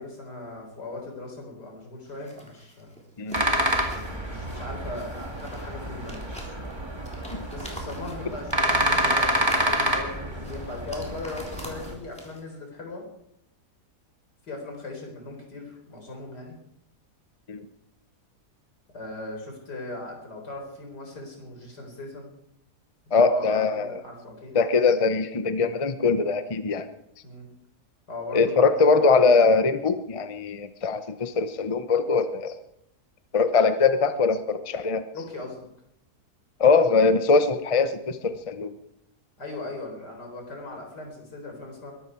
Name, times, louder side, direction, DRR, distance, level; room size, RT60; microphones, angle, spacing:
voice 1, 0.0-2.9 4.3-6.3 7.5-13.0 14.4-16.5 18.9-22.3 23.1-24.6 27.2-27.5 28.1-28.6 35.1-35.6 39.4-41.9, left 2 dB, 80° left, 2 dB, 4.8 m, -38 dB
sound 1, 2.1-12.6, equal, 5° left, 3.5 m, -45 dB
voice 2, 3.2-3.5 7.3-7.5 17.5-17.7 23.1-24.0 24.5-26.9 28.3-32.6 33.3-35.0 36.6-38.7, left 4 dB, 25° left, 10 dB, 0.8 m, -22 dB
sound 2, 3.3-11.9, right 1 dB, 15° right, 2.1 m, -28 dB
21.5 x 13.0 x 4.7 m, 0.75 s
omnidirectional pair, 1.7 m